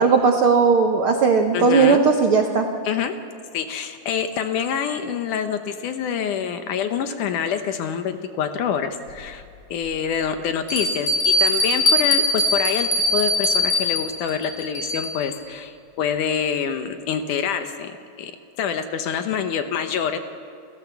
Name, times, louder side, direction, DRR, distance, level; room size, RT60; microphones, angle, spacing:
voice 1, 0.0-2.7, right 5 dB, 85° right, 3 dB, 1.1 m, -17 dB
voice 2, 1.5-2.0 2.9-3.1 3.5-9.4 9.7-18.3 18.6-20.2, left 7 dB, 70° left, 8 dB, 2.2 m, -26 dB
Bell, 9.1-9.2 9.8-9.9 10.7-15.2, left 1 dB, 40° left, 4.1 m, -21 dB
30.0 x 15.0 x 7.0 m, 2.4 s
omnidirectional pair, 4.2 m